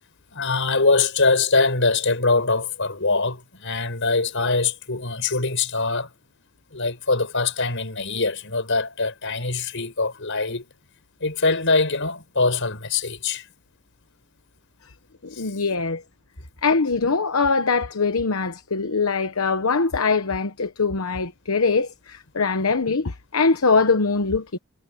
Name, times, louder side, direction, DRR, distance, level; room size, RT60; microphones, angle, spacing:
voice 1, 0.3-6.1 6.7-10.7 11.2-13.5 15.3-15.6, left 3 dB, 60° left, 7.0 m, -23 dB
voice 2, 15.2-16.0 16.6-24.6, left 4 dB, 80° left, 1.0 m, -22 dB
head